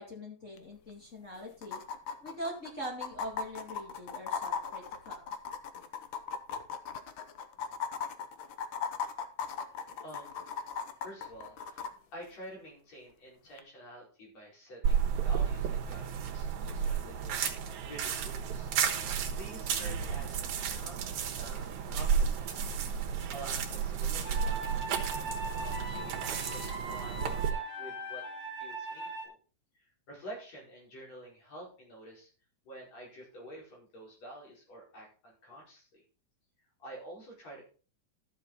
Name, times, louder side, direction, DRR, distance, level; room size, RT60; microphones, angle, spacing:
voice 1, 0.0-1.8 2.2-5.2, equal, 25° left, -2 dB, 2.4 m, -42 dB
sound 1, 0.6-0.7 0.9-1.0 1.6-11.9 13.6-13.7, left 6 dB, 75° left, 1.1 m, -38 dB
voice 2, 9.4-18.7 19.2-20.4 20.7-22.7 23.3-24.9 25.2-28.3 28.6-29.4 29.7-32.3 32.6-36.0 36.8-37.6, right 1 dB, 60° left, -3 dB, 6.2 m, -49 dB
sound 2, 14.8-27.5, right 7 dB, 75° right, 2.6 m, -32 dB
sound 3, 24.2-29.3, right 2 dB, 45° left, 3.8 m, -40 dB
12.5 x 7.5 x 4.1 m, 0.38 s
omnidirectional pair, 3.4 m